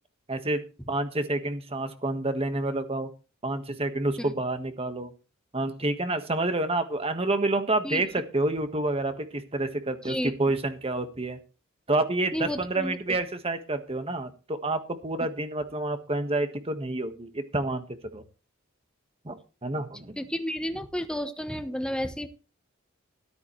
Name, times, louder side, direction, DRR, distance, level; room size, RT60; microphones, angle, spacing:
voice 1, 0.3-0.6 0.9-3.1 3.4-5.1 5.5-11.4 11.9-18.2 19.2-20.2, right 2 dB, 30° right, 8 dB, 1.5 m, -28 dB
voice 2, 12.3-13.2 20.2-22.3, equal, 5° left, 8 dB, 1.1 m, -32 dB
13.0 x 13.0 x 3.2 m, 0.33 s
head